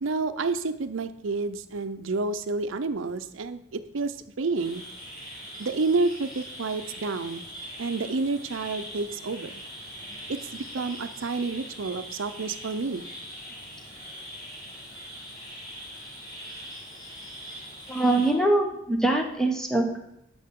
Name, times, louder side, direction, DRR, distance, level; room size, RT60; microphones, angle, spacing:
voice 1, 0.0-4.8 5.6-7.4 7.8-9.6 10.3-13.0, right 3 dB, 75° right, 10 dB, 0.6 m, -29 dB
sound 1, 4.5-18.3, equal, 25° left, 3.6 m, -42 dB
voice 2, 17.9-20.0, right 2 dB, 5° left, 2 dB, 1.0 m, -23 dB
11.0 x 5.7 x 3.7 m, 0.83 s
head